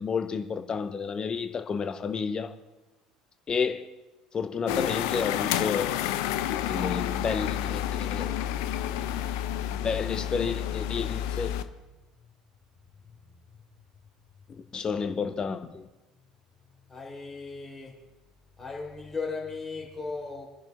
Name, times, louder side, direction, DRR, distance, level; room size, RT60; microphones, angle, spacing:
voice 1, 0.0-2.5 3.5-3.9 4.3-5.9 6.7-8.4 9.8-11.5 14.7-15.8, left 5 dB, 30° left, 10 dB, 0.9 m, -30 dB
sound 1, 4.7-11.6, left 11 dB, 60° left, 0.6 m, -30 dB
voice 2, 16.9-17.9 18.6-20.4, left 4 dB, 15° left, -1 dB, 3.4 m, -36 dB
29.0 x 10.5 x 2.5 m, 1.1 s
figure-of-eight pair, 60°, 3 cm